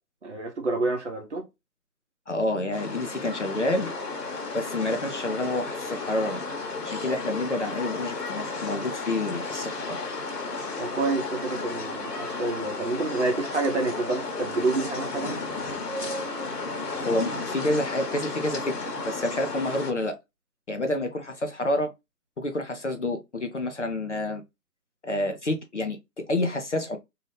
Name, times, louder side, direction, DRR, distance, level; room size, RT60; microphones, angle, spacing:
voice 1, 0.2-1.4 10.8-15.4, right 3 dB, 45° right, 0.8 m, -28 dB
voice 2, 2.3-3.9 4.5-6.4 6.8-10.0 17.0-20.2 20.7-21.9 22.4-24.4 25.0-27.0, left 1 dB, 50° left, 0.5 m, -28 dB
sound 1, 2.7-19.9, left 3 dB, 65° left, 1.2 m, -33 dB
2.8 x 2.3 x 3.1 m
figure-of-eight pair, 165°, 49 cm